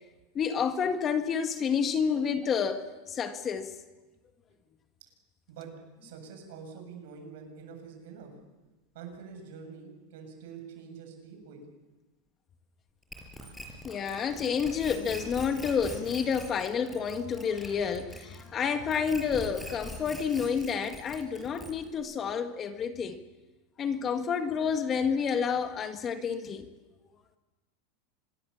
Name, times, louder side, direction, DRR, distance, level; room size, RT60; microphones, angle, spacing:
voice 1, 0.4-3.7 13.8-23.2 23.8-26.7, left 6 dB, 25° left, 1.7 m, -29 dB
voice 2, 6.0-8.3 8.9-11.6, right 6 dB, 70° right, 7.8 m, -46 dB
sound 1, 13.1-18.6 18.9-22.0, left 1 dB, 5° left, 5.8 m, -43 dB
26.5 x 21.5 x 7.2 m
supercardioid pair, 145°, 0 cm